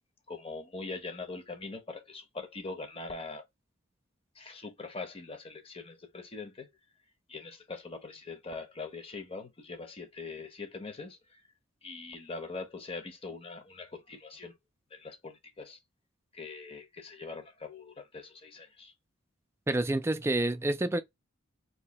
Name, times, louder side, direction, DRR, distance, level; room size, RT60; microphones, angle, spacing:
voice 1, 0.3-3.4 4.4-6.7 7.3-11.2 11.8-14.5 14.9-15.8 16.3-18.9, left 3 dB, 25° left, 0.8 m, -42 dB
voice 2, 19.7-21.0, right 1 dB, 10° right, 0.3 m, -28 dB
2.7 x 2.7 x 4.0 m
head